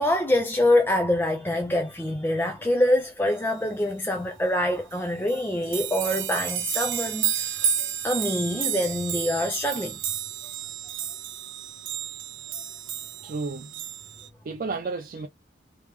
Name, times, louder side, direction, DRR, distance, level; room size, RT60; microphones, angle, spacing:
voice 1, 0.0-10.0, left 1 dB, 10° left, 0.5 m, -25 dB
sound 1, 4.9-5.0 5.3-14.3, right 9 dB, 85° right, 0.9 m, -31 dB
voice 2, 13.2-13.8 14.4-15.3, right 4 dB, 45° right, 0.3 m, -32 dB
3.5 x 3.0 x 3.1 m
head